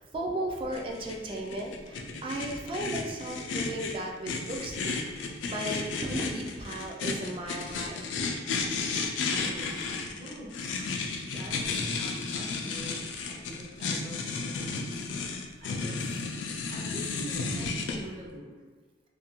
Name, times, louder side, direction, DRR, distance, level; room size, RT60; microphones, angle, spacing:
voice 1, 0.0-8.1, right 1 dB, 30° right, 0 dB, 0.3 m, -36 dB
sound 1, 0.7-18.0, left 4 dB, 90° left, 0.3 m, -33 dB
voice 2, 3.3-3.6 9.3-11.6 12.0-14.7 15.6-16.0 16.7-18.6, equal, 45° right, -6 dB, 0.8 m, -45 dB
2.5 x 2.2 x 2.8 m, 1.3 s
head